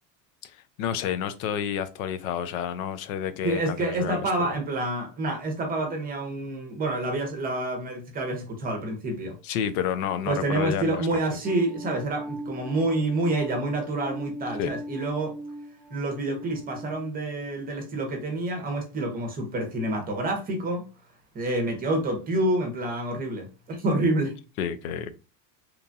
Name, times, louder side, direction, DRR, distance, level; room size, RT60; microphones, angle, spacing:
voice 1, 0.4-4.5 9.4-11.4 14.6-14.7 24.6-25.1, left 9 dB, 85° left, 0.5 m, -30 dB
voice 2, 3.4-9.4 10.3-15.4 15.9-20.8 21.3-24.3, right 2 dB, 20° right, 0.7 m, -28 dB
sound 1, 11.4-18.0, equal, 50° left, 0.8 m, -39 dB
2.9 x 2.3 x 2.5 m
supercardioid pair, 140°, 40 cm